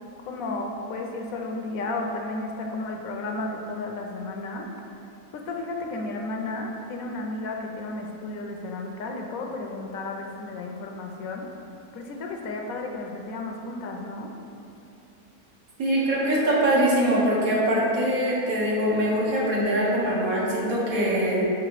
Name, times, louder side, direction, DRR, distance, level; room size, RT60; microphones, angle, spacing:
voice 1, 0.3-4.7 5.3-11.6 11.9-14.3, left 2 dB, 75° left, 1 dB, 1.0 m, -33 dB
voice 2, 15.8-21.4, right 1 dB, 65° right, -5 dB, 1.6 m, -23 dB
4.8 x 4.5 x 4.6 m, 2.7 s
omnidirectional pair, 1.6 m